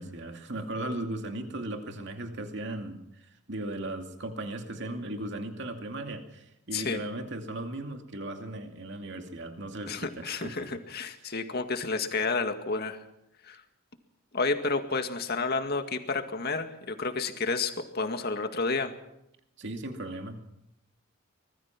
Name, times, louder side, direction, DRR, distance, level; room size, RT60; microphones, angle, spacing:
voice 1, 0.0-10.6 11.2-11.4 19.6-20.4, right 1 dB, 55° right, 5 dB, 2.5 m, -37 dB
voice 2, 9.9-13.0 13.4-13.6 14.3-18.9, left 4 dB, 50° left, 7 dB, 2.0 m, -30 dB
24.5 x 20.5 x 6.0 m, 0.83 s
head